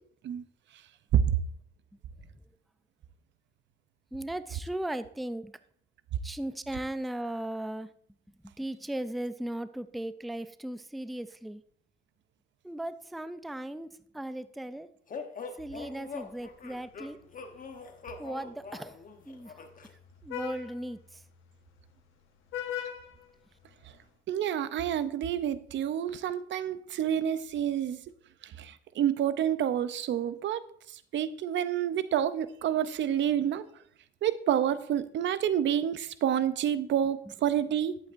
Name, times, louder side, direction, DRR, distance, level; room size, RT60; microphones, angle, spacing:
voice 1, 4.1-5.5 6.2-7.9 8.4-11.6 12.6-14.9 15.6-17.2 18.2-19.0 19.2-19.6 20.2-21.2 27.1-27.2 37.2-37.3, right 1 dB, ahead, 13 dB, 0.4 m, -37 dB
sound 1, 15.1-19.9, left 4 dB, 45° left, 1.0 m, -43 dB
Vehicle horn car horn honking, 16.0-24.1, left 10 dB, 90° left, 1.2 m, -44 dB
voice 2, 24.3-28.0 28.4-30.6 31.1-33.7 34.2-38.0, right 10 dB, 65° right, 14 dB, 0.5 m, -28 dB
11.0 x 8.2 x 2.5 m, 0.63 s
cardioid pair, 90°, 20 cm